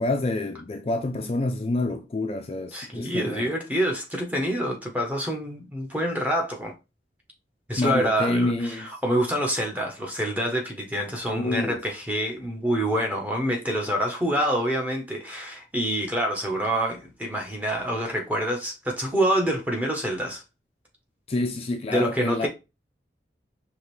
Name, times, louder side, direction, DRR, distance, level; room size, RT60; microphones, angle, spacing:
voice 1, 0.0-3.5 7.8-8.9 11.3-11.8 21.3-22.5, left 2 dB, 35° left, 0.3 m, -27 dB
voice 2, 2.7-6.7 7.7-20.4 21.9-22.5, equal, 10° right, 0.9 m, -26 dB
4.9 x 3.0 x 3.1 m
head